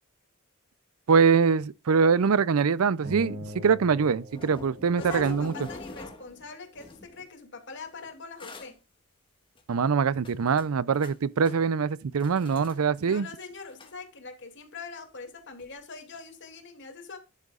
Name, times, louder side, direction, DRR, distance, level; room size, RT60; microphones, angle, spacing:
voice 1, 1.1-5.5 9.7-13.3, right 5 dB, 75° right, 0.5 m, -23 dB
sound 1, 3.0-5.7, left 1 dB, 55° right, 3.0 m, -42 dB
sound 2, 4.3-6.5 6.8-7.2 8.0-8.1 8.4-8.7 9.6-9.7 10.2-11.2 11.5-11.7 12.2-12.8 13.0-13.1 13.5-13.9 15.6-15.7 16.1-16.2, left 2 dB, 25° left, 1.6 m, -43 dB
voice 2, 5.0-8.8 13.0-17.2, left 4 dB, 55° left, 2.5 m, -43 dB
10.5 x 8.3 x 2.4 m
head